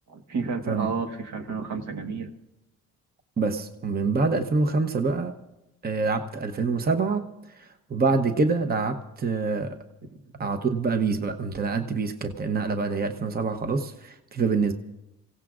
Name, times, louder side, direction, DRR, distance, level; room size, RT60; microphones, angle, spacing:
voice 1, 0.1-2.3 10.0-10.2, right 4 dB, 70° right, 5 dB, 1.5 m, -31 dB
voice 2, 3.4-5.3 5.8-7.2 7.6-9.7 10.4-14.7, right 4 dB, 30° right, 7 dB, 0.9 m, -26 dB
29.5 x 16.5 x 2.5 m, 0.93 s
cardioid pair, 90°, 30 cm